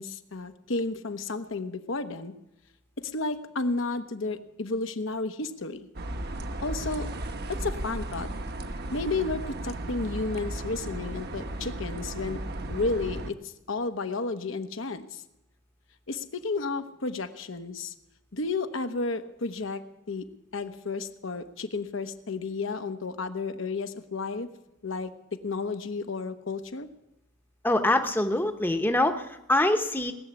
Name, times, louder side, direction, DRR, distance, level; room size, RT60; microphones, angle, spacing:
voice 1, 0.0-2.3 3.0-5.9 6.6-7.1 7.4-8.3 8.9-12.4 12.7-15.2 16.1-17.9 18.3-20.3 20.5-24.5 24.8-26.9, left 3 dB, 70° left, 8 dB, 1.0 m, -32 dB
sound 1, 5.9-13.3, right 1 dB, 50° right, 1.0 m, -35 dB
voice 2, 27.6-30.1, left 1 dB, 10° left, 6 dB, 0.8 m, -24 dB
19.5 x 7.1 x 9.7 m, 0.91 s
head